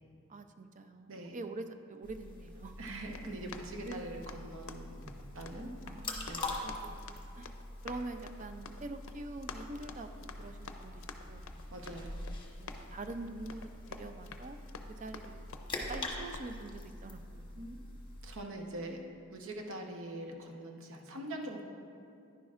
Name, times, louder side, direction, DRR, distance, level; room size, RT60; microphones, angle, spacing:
voice 1, 0.3-2.8 3.8-4.0 5.9-7.5 7.8-11.5 12.6-14.6 15.0-15.4 15.9-17.6, right 2 dB, 35° right, 8 dB, 0.4 m, -45 dB
sound 1, 2.0-18.4, left 2 dB, 20° left, 1.1 m, -45 dB
Run, 2.8-16.4, left 5 dB, 65° left, 0.5 m, -51 dB
voice 2, 2.8-5.7 6.3-6.6 11.7-12.3 17.5-17.8 18.2-19.0 19.3-21.6, right 1 dB, 65° right, 2 dB, 1.0 m, -43 dB
10.5 x 10.5 x 2.5 m, 2.5 s
head